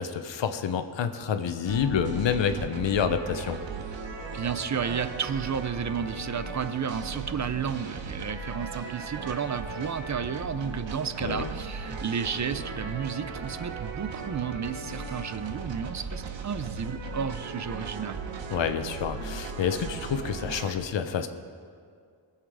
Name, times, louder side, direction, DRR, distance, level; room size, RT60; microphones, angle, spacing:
voice 1, 0.0-3.6 11.2-11.5 18.5-21.3, left 7 dB, 80° left, 9 dB, 0.9 m, -28 dB
sound 1, 1.7-20.7, right 4 dB, 80° right, 1.1 m, -37 dB
voice 2, 4.3-18.2, right 7 dB, 40° right, 12 dB, 0.6 m, -32 dB
19.5 x 7.4 x 4.9 m, 2.2 s
wide cardioid pair, 95°, 44 cm